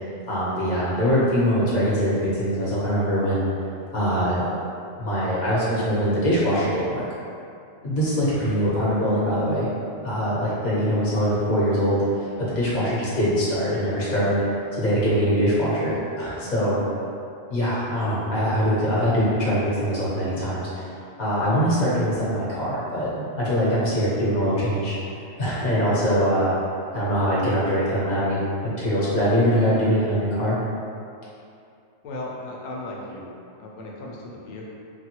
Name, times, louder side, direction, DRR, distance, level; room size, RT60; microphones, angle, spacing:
voice 1, 0.3-3.5 3.9-4.5 5.0-7.0 7.8-9.7 10.0-14.4 14.7-16.8 17.5-20.9 21.2-25.0 25.4-26.5 26.9-30.6, equal, 40° left, -9 dB, 0.8 m, -23 dB
voice 2, 32.0-33.3 33.6-34.7, left 2 dB, 90° left, -3 dB, 1.0 m, -36 dB
3.2 x 2.2 x 2.9 m, 2.6 s
omnidirectional pair, 1.3 m